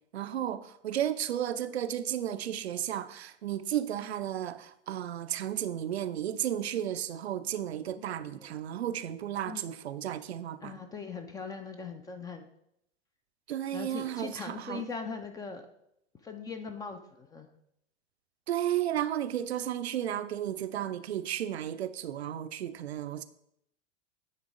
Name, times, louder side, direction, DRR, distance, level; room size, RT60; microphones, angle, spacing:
voice 1, 0.1-10.8 13.5-14.8 18.5-23.2, right 11 dB, 65° right, 0.5 m, -33 dB
voice 2, 8.0-8.6 9.4-9.7 10.6-12.5 13.7-15.6 16.2-17.5, left 5 dB, 10° left, 0.4 m, -40 dB
9.5 x 3.4 x 4.7 m
figure-of-eight pair, 90°, 35 cm